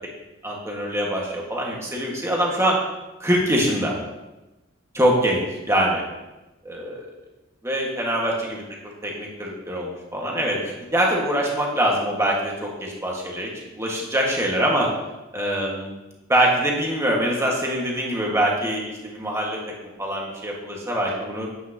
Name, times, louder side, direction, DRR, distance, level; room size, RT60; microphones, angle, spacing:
voice 1, 0.4-2.8 3.2-3.9 4.9-6.0 6.7-7.0 7.6-8.6 9.0-14.9 15.3-15.9 16.3-19.6 20.0-21.5, right 1 dB, 15° right, -3 dB, 1.8 m, -24 dB
9.9 x 9.1 x 3.0 m, 1.1 s
head